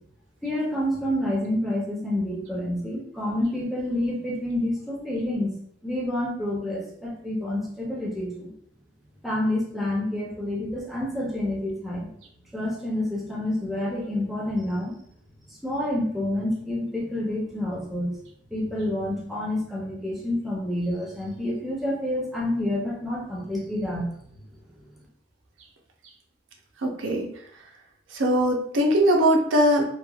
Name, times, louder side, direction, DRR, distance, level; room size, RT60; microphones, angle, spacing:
voice 1, 0.4-5.6 5.8-8.5 9.2-12.1 12.5-15.0 15.5-18.1 18.5-24.1, left 1 dB, ahead, -4 dB, 0.5 m, -28 dB
voice 2, 26.8-27.3 28.1-29.8, equal, 85° right, 2 dB, 0.5 m, -21 dB
2.9 x 2.2 x 2.3 m, 0.66 s
head